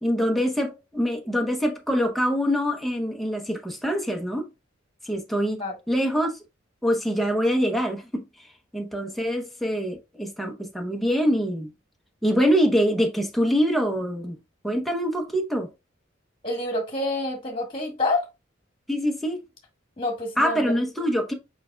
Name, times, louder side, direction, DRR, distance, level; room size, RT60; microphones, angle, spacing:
voice 1, 0.0-4.5 5.0-5.6 5.9-6.4 6.8-8.2 8.7-11.7 12.2-14.4 14.6-15.7 18.9-19.4 20.4-21.3, equal, ahead, 0.8 m, -24 dB
voice 2, 16.4-18.3 20.0-20.7, left 2 dB, 25° left, 1.6 m, -27 dB
4.9 x 4.7 x 2.2 m
head